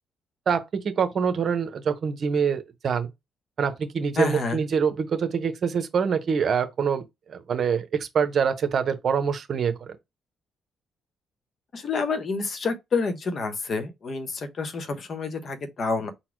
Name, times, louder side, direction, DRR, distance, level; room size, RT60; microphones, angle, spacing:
voice 1, 0.5-3.1 3.6-10.0, right 6 dB, 55° right, 0.9 m, -25 dB
voice 2, 4.2-4.6 11.7-16.1, left 4 dB, 50° left, 1.0 m, -28 dB
4.1 x 2.1 x 4.5 m
cardioid pair, 90°, 0 cm